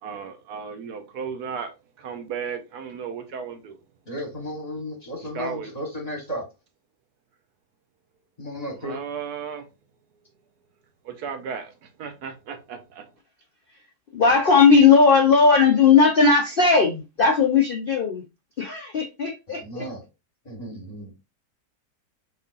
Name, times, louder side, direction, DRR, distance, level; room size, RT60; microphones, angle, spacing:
voice 1, 0.0-3.8 5.2-5.7 8.8-9.7 11.0-13.1, right 6 dB, 70° right, 1.2 m, -35 dB
voice 2, 4.1-6.4 8.4-9.0 19.6-20.0 20.4-21.1, equal, 25° left, 1.3 m, -34 dB
voice 3, 14.1-18.2 18.6-19.9, left 5 dB, 50° left, 0.6 m, -17 dB
6.1 x 3.4 x 2.5 m
omnidirectional pair, 1.8 m